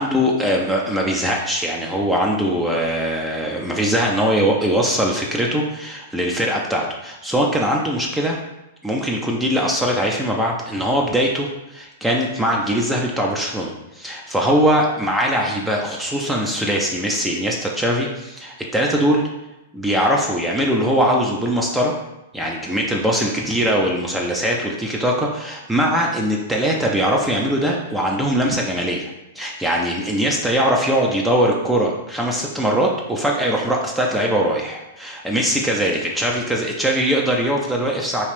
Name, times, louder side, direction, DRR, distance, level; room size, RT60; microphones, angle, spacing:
voice 1, 0.0-8.4 8.8-19.3 19.7-21.9 22.3-38.3, equal, 5° right, -1 dB, 0.4 m, -21 dB
2.9 x 2.4 x 3.1 m, 0.95 s
hypercardioid pair, 115°, 0 cm